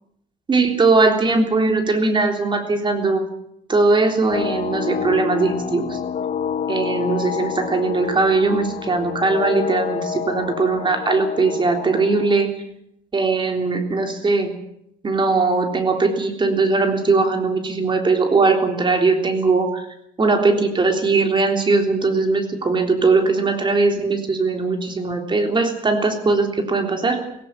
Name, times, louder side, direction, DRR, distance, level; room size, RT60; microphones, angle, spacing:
voice 1, 0.5-3.2 3.7-6.0 6.7-12.5 13.1-14.5 15.0-19.9 20.2-27.2, right 3 dB, 30° right, 5 dB, 3.6 m, -19 dB
sound 1, 4.3-12.4, left 7 dB, 45° left, 1.3 m, -28 dB
17.5 x 17.0 x 9.0 m, 0.75 s
cardioid pair, 110°, 17 cm